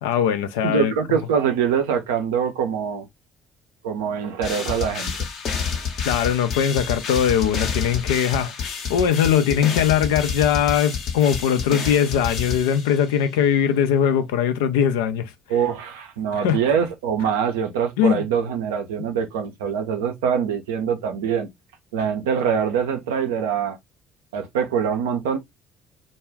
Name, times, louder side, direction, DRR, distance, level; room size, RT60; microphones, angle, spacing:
voice 1, 0.0-0.9 6.0-15.3 16.3-16.6 18.0-18.2, left 8 dB, 75° left, 0.4 m, -21 dB
voice 2, 0.6-3.1 3.8-5.3 15.5-21.5 21.9-23.8 24.3-25.4, right 7 dB, 80° right, 0.5 m, -24 dB
sound 1, 4.4-13.2, left 6 dB, 60° left, 0.7 m, -29 dB
2.2 x 2.0 x 3.4 m
hypercardioid pair, 55°, 0 cm